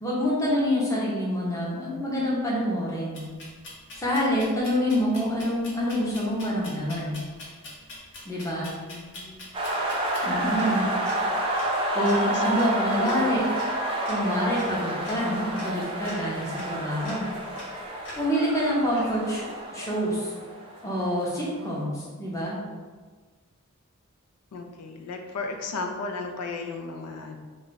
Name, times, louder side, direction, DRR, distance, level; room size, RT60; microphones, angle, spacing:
voice 1, 0.0-3.2 4.0-7.2 8.2-8.7 10.2-10.9 11.9-13.4 14.1-17.3 18.2-19.5 19.7-20.3 20.8-22.6, equal, 15° left, -6 dB, 0.7 m, -26 dB
sound 1, 3.1-18.5 18.9-19.5, left 1 dB, 60° left, 0.9 m, -44 dB
voice 2, 8.8-9.4 10.3-11.0 12.1-12.6 12.9-13.4 24.5-27.4, left 3 dB, 90° left, 4 dB, 0.4 m, -35 dB
sound 2, 9.5-21.2, right 1 dB, 25° right, 0.4 m, -29 dB
2.4 x 2.2 x 3.8 m, 1.4 s
head